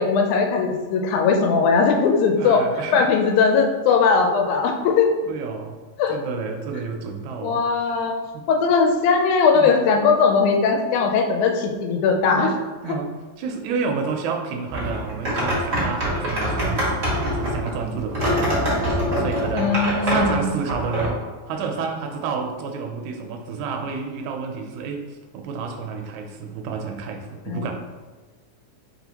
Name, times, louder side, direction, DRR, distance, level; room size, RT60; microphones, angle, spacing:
voice 1, 0.0-2.6 2.9-5.1 6.0-6.2 7.4-8.2 8.5-12.5 19.5-20.6 27.5-27.7, left 5 dB, 85° left, 3 dB, 2.0 m, -19 dB
voice 2, 2.4-3.1 5.2-5.8 6.1-7.6 8.3-8.5 9.5-9.7 12.2-12.5 12.8-19.8 20.0-21.2 21.5-27.7, right 5 dB, 80° right, 3 dB, 1.8 m, -30 dB
sound 1, 14.7-21.1, equal, 55° right, 0.9 m, -24 dB
4.2 x 4.1 x 2.8 m, 1.4 s
omnidirectional pair, 3.4 m